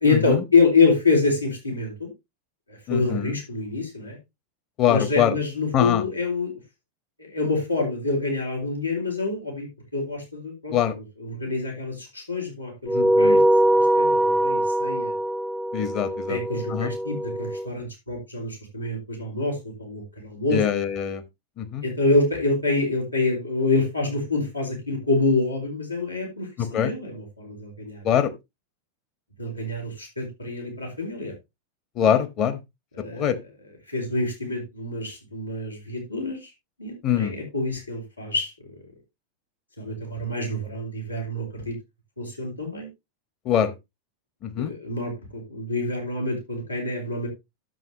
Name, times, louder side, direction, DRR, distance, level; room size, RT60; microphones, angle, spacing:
voice 1, 0.0-2.1 2.7-4.2 4.9-6.5 7.2-9.7 9.9-13.4 13.7-15.1 16.0-20.6 21.8-28.0 29.4-31.3 32.9-33.3 33.9-36.5 36.8-38.7 39.8-41.8 42.2-42.9 44.6-47.3, left 3 dB, 85° left, 3.6 m, -26 dB
voice 2, 2.9-3.3 4.8-5.3 5.7-6.0 10.7-10.9 12.9-13.4 15.7-16.4 16.7-16.9 20.5-21.2 21.6-21.8 26.6-26.9 28.0-28.3 32.0-32.6 33.1-33.3 37.0-37.3 43.4-43.7 44.4-44.7, left 9 dB, 35° left, 1.3 m, -23 dB
sound 1, 12.9-17.7, right 1 dB, ahead, 0.5 m, -22 dB
10.5 x 7.5 x 3.0 m
figure-of-eight pair, 90°, 0 cm